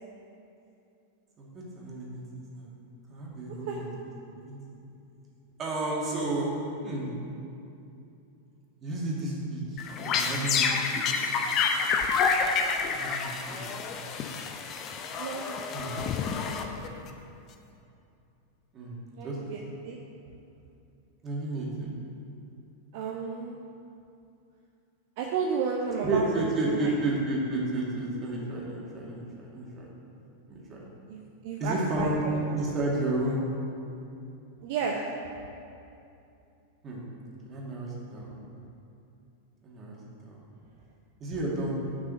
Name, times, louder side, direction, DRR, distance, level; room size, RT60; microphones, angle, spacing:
voice 1, 1.4-2.7 3.1-3.8 4.3-4.6 5.6-6.5 6.8-7.1 8.8-9.8 10.2-10.8 11.1-11.3 12.9-14.3 15.7-15.9 18.7-19.0 19.2-19.4 21.2-21.9 26.0-29.9 30.5-30.8 31.6-32.2 32.5-33.5 36.8-37.0 37.4-38.3 39.6-40.0 40.2-40.4 41.2-41.7, right 2 dB, 25° right, -4 dB, 2.4 m, -32 dB
sound 1, 9.8-17.1, left 5 dB, 35° left, 0.7 m, -28 dB
voice 2, 15.2-16.5 19.2-20.0 22.9-23.6 25.2-26.9 31.1-32.1 32.5-32.6 34.6-35.0, right 5 dB, 50° right, -1 dB, 0.8 m, -33 dB
7.4 x 6.1 x 7.7 m, 2.7 s
figure-of-eight pair, 90°, 0 cm